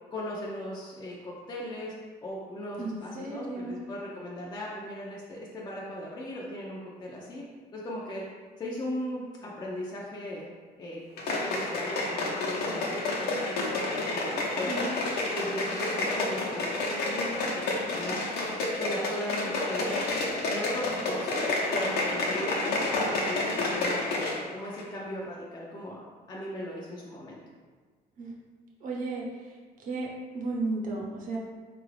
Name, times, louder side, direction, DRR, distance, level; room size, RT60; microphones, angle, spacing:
voice 1, 0.1-1.9 2.2-7.4 7.7-8.2 8.6-10.5 10.8-14.8 15.3-18.2 18.8-20.0 20.5-22.6 22.9-27.4, left 1 dB, 25° left, -5 dB, 0.5 m, -38 dB
voice 2, 2.8-3.8 14.6-15.0 28.2-28.3 28.8-29.2 29.9-30.1 30.3-31.4, right 3 dB, 50° right, -3 dB, 0.9 m, -33 dB
sound 1, 11.2-24.5 24.7-24.8, left 2 dB, 70° left, 0.8 m, -30 dB
4.0 x 2.5 x 3.2 m, 1.5 s
cardioid pair, 110°, 17 cm